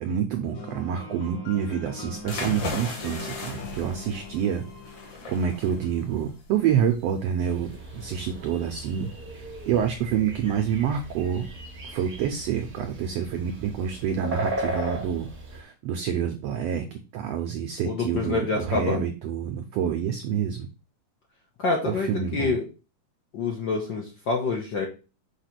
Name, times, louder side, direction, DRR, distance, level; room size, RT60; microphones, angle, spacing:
voice 1, 0.0-4.6 5.3-9.1 9.3-11.5 11.8-16.8 17.1-20.7 21.8-22.5, right 8 dB, 85° right, 6 dB, 1.4 m, -27 dB
sound 1, 0.5-6.3, left 4 dB, 65° left, 2.8 m, -42 dB
sound 2, 2.2-11.5, left 2 dB, 50° left, 2.7 m, -39 dB
sound 3, 7.4-15.6, right 1 dB, 70° right, 0.5 m, -36 dB
voice 2, 17.9-19.0 21.6-22.6 23.3-24.9, left 4 dB, 90° left, 0 dB, 1.0 m, -27 dB
6.5 x 3.0 x 5.8 m, 0.31 s
omnidirectional pair, 3.6 m